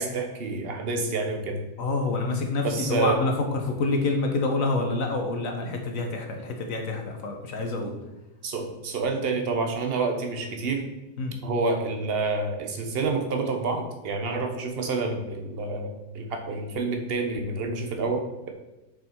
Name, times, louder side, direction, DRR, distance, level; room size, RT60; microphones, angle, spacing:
voice 1, 0.0-1.6 2.6-3.2 8.4-10.8 11.4-18.5, right 3 dB, 40° right, 4 dB, 1.0 m, -28 dB
voice 2, 1.8-3.3 3.6-7.9 11.2-11.4, left 3 dB, 50° left, 3 dB, 1.4 m, -27 dB
6.7 x 5.4 x 4.5 m, 1.0 s
omnidirectional pair, 1.9 m